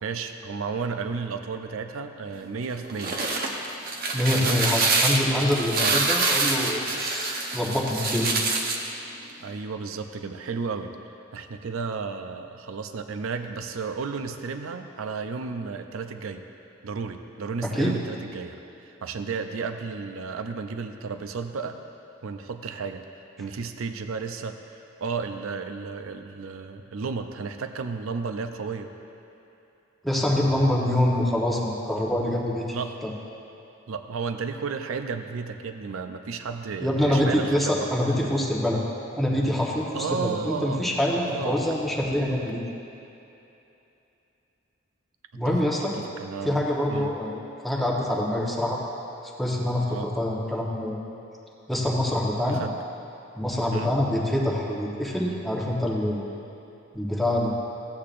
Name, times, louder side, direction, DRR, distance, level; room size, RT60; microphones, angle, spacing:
voice 1, 0.0-3.2 4.4-4.6 5.8-6.0 9.4-10.9 11.3-16.4 16.8-21.8 22.2-23.0 23.4-28.9 32.7-33.0 33.9-37.9 39.9-41.6 45.3-45.6 45.9-46.6 46.9-47.1 49.9-50.1 52.5-52.7 53.7-53.9, right 5 dB, 85° right, 7 dB, 0.5 m, -33 dB
sound 1, 2.8-8.9, right 3 dB, 50° right, 0.8 m, -26 dB
voice 2, 4.1-8.4 17.6-18.0 30.0-32.8 33.0-33.1 36.8-38.8 39.2-42.6 45.3-45.9 46.4-48.8 49.4-51.0 51.7-52.6 53.4-56.2 56.9-57.5, left 1 dB, ahead, -4 dB, 1.0 m, -25 dB
15.0 x 8.5 x 2.5 m, 2.9 s
head